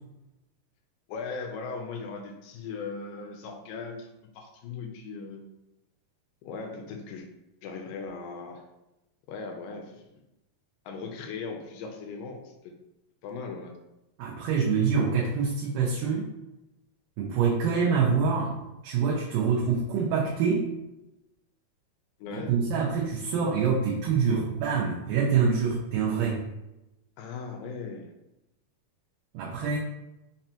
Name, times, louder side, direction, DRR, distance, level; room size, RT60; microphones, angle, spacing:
voice 1, 1.1-4.1 4.4-5.4 6.4-7.3 7.6-8.6 9.3-10.0 10.9-12.7 13.2-13.7 22.2-22.5 27.2-28.1, left 4 dB, 85° left, 3 dB, 1.9 m, -38 dB
voice 2, 14.2-16.3 17.2-18.6 18.8-20.7 22.3-26.4 29.3-29.8, right 5 dB, 80° right, -2 dB, 2.0 m, -25 dB
5.9 x 2.1 x 2.8 m, 0.94 s
omnidirectional pair, 4.3 m